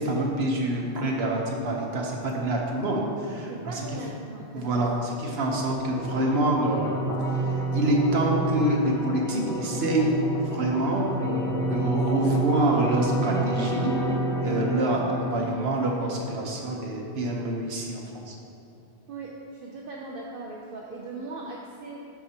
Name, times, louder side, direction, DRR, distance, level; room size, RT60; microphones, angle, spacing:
voice 1, 0.0-3.8 4.5-7.0 7.3-10.1 10.4-13.9 14.4-18.3, right 1 dB, 80° right, -1 dB, 1.2 m, -26 dB
voice 2, 3.5-4.9 19.1-22.0, right 2 dB, 65° right, -2 dB, 0.8 m, -39 dB
sound 1, 5.5-16.5, right 2 dB, 5° left, 0.8 m, -29 dB
12.0 x 4.9 x 2.9 m, 2.7 s
omnidirectional pair, 1.0 m